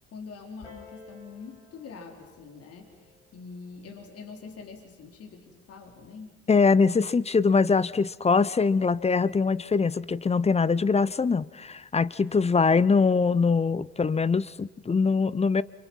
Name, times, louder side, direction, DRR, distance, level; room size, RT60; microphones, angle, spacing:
voice 1, 0.1-6.5, left 5 dB, 50° left, 2 dB, 4.2 m, -44 dB
Piano, 0.6-5.8 6.7-6.8, left 3 dB, 90° left, 6.7 m, -55 dB
voice 2, 6.5-15.6, left 4 dB, 20° left, 19 dB, 0.9 m, -23 dB
30.0 x 27.0 x 5.7 m, 1.2 s
hypercardioid pair, 55°, 31 cm